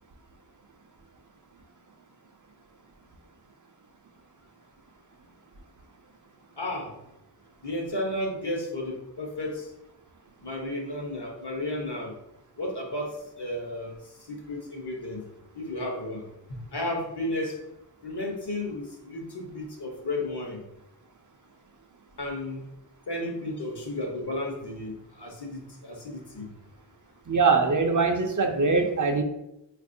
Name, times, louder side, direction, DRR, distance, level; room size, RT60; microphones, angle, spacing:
voice 1, 6.6-7.0 7.6-9.7 10.4-12.1 12.6-15.2 15.5-17.6 18.0-20.6 22.2-22.6 23.1-26.5, left 1 dB, 60° left, 0 dB, 1.0 m, -33 dB
voice 2, 27.3-29.2, right 4 dB, 45° right, 4 dB, 0.5 m, -22 dB
4.1 x 2.6 x 2.6 m, 0.88 s
wide cardioid pair, 40°, 44 cm